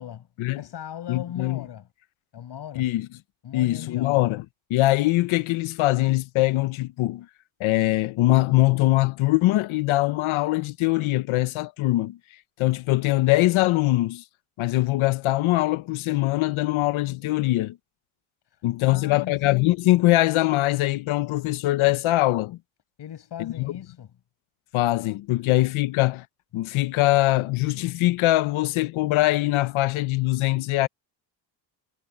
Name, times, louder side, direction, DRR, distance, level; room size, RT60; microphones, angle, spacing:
voice 1, 0.5-1.9 2.3-2.9 3.4-4.3 18.8-19.4 23.0-24.1, left 10 dB, 60° left, 5.6 m, -38 dB
voice 2, 1.1-1.6 2.8-3.1 3.5-4.4 4.7-7.3 7.6-12.2 12.6-14.2 14.6-17.8 18.6-22.6 23.4-23.7 24.7-26.3 26.5-30.9, left 18 dB, 85° left, 0.9 m, -22 dB
cardioid pair, 130°, 47 cm